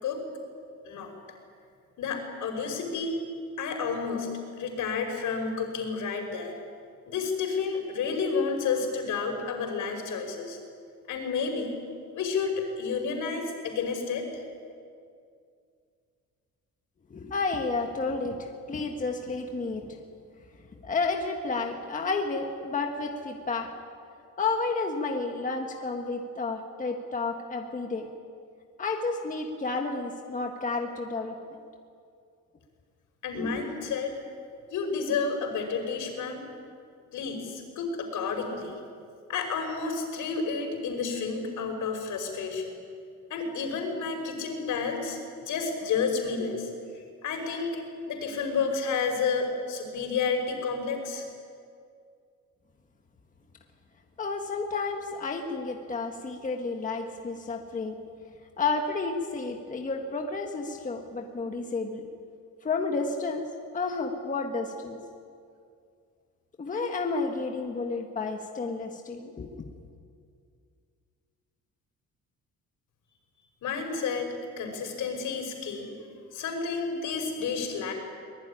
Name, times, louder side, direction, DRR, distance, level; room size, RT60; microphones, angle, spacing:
voice 1, 2.0-3.2 3.6-4.3 4.6-6.5 7.1-10.6 11.1-11.7 12.1-14.4 33.2-34.2 34.7-36.5 37.1-38.8 39.3-42.7 43.3-45.2 45.5-51.2 73.6-75.9 76.3-77.9, left 5 dB, 80° left, 4 dB, 5.5 m, -31 dB
voice 2, 17.1-19.9 20.8-23.7 24.4-28.1 28.8-31.4 33.3-33.6 54.2-58.0 58.6-62.0 62.6-63.4 63.7-65.0 66.6-69.6, left 3 dB, 25° left, 3 dB, 1.6 m, -31 dB
23.5 x 20.5 x 10.0 m, 2.3 s
cardioid pair, 175°, 30 cm